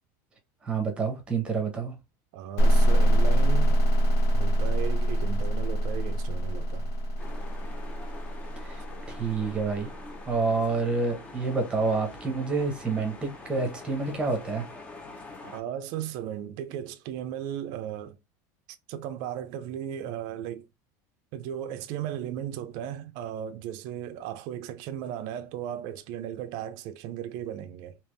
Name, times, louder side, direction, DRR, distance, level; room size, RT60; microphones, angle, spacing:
voice 1, 0.6-1.9 8.6-8.8 9.1-9.9 10.3-14.7, right 4 dB, 10° right, 0.9 m, -28 dB
voice 2, 2.3-3.8 4.3-6.9 15.4-18.2 18.7-20.7 21.3-28.0, right 10 dB, 45° right, 0.5 m, -36 dB
sound 1, 2.6-10.1, equal, 65° left, 1.2 m, -24 dB
sound 2, 7.2-15.6, left 3 dB, 15° left, 0.6 m, -44 dB
3.4 x 2.9 x 3.1 m
supercardioid pair, 170°, 10 cm